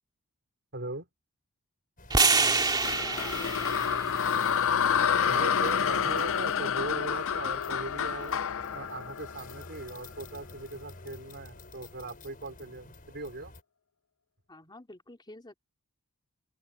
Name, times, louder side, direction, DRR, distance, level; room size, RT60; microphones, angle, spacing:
voice 1, 0.7-1.1 5.3-8.4 8.7-13.5, right 2 dB, 50° right, 4.6 m, -39 dB
sound 1, 2.0-13.6, left 4 dB, 40° left, 5.1 m, -49 dB
sound 2, 2.1-6.3, right 4 dB, 20° right, 2.5 m, -29 dB
voice 2, 2.6-4.2 14.5-15.6, left 2 dB, 20° left, 3.2 m, -48 dB
sound 3, 2.8-10.0, left 7 dB, 65° left, 0.6 m, -28 dB
open air
head